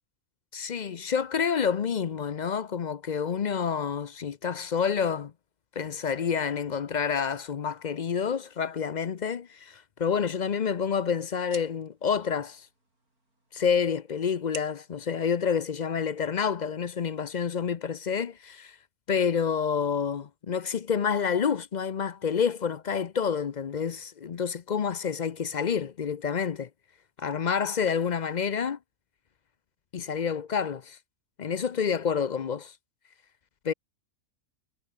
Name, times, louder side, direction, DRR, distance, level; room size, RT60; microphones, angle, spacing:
voice 1, 0.5-5.3 5.8-12.6 13.5-18.8 19.1-26.7 27.2-28.8 29.9-31.0 31.4-32.7 33.6-33.7, left 6 dB, 50° left, 0.5 m, -28 dB
sound 1, 10.2-16.2, right 2 dB, 80° right, 8.6 m, -51 dB
omnidirectional pair, 1.5 m